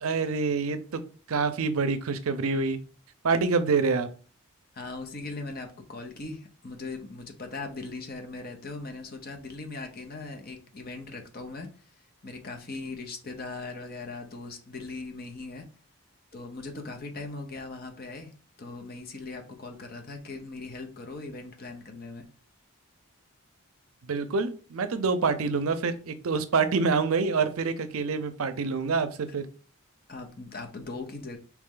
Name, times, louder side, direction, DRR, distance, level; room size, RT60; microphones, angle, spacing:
voice 1, 0.0-0.8 1.3-2.8 3.2-4.1 24.0-29.5, right 4 dB, 70° right, 11 dB, 0.5 m, -26 dB
voice 2, 4.7-11.7 12.2-15.6 16.3-18.3 18.6-22.3 30.1-31.4, left 3 dB, 40° left, 4 dB, 0.7 m, -39 dB
4.1 x 3.0 x 3.7 m, 0.38 s
head